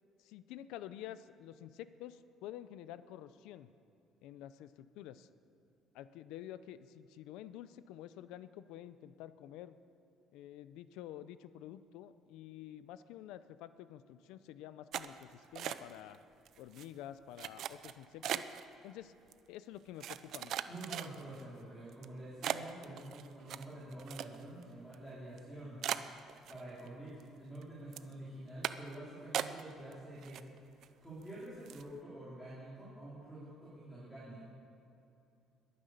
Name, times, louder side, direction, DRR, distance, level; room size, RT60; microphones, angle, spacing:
voice 1, 0.2-3.7 4.2-5.3 5.9-9.7 10.3-16.2 16.6-18.5 18.8-19.1 19.5-20.6, left 12 dB, 90° left, 14 dB, 0.6 m, -49 dB
sound 1, 14.9-16.2 16.5-16.9 17.4-18.6 19.3-19.4 20.0-21.4 21.9-22.1 22.4-24.6 24.9-25.0 25.4-25.5 25.8-26.9 27.2-27.6 27.9-28.1 28.6-29.0 29.3-29.9 30.2-30.9 31.2-31.3 31.7-31.9, right 11 dB, 55° right, 0.6 m, -39 dB
voice 2, 20.7-25.8 26.5-30.5 31.0-34.5, right 1 dB, ahead, -10 dB, 4.1 m, -48 dB
21.5 x 9.7 x 6.7 m, 2.7 s
cardioid pair, 150°, 0 cm